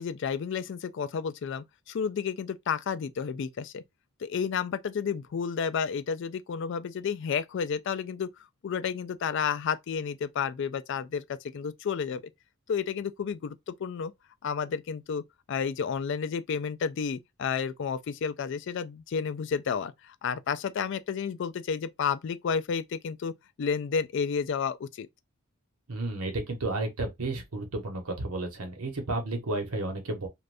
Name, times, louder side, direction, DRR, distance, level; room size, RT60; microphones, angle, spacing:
voice 1, 0.0-3.8 4.2-8.3 8.6-12.2 12.7-14.1 14.4-25.1, left 6 dB, 55° left, 0.3 m, -31 dB
voice 2, 25.9-30.3, right 2 dB, 85° right, 1.0 m, -32 dB
2.6 x 2.4 x 3.3 m
head